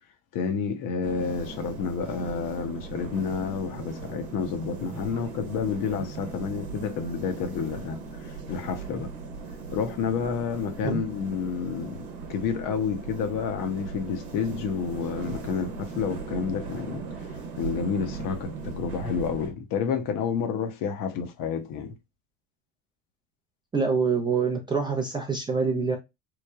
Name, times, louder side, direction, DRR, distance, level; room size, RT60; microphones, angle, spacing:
voice 1, 0.3-9.1 9.7-17.0 17.6-21.9, left 6 dB, 50° left, 0.7 m, -30 dB
sound 1, 1.0-19.5, right 4 dB, 70° right, 0.9 m, -38 dB
voice 2, 23.7-26.0, right 5 dB, 10° right, 0.4 m, -25 dB
3.1 x 2.1 x 2.3 m
hypercardioid pair, 90°, 42 cm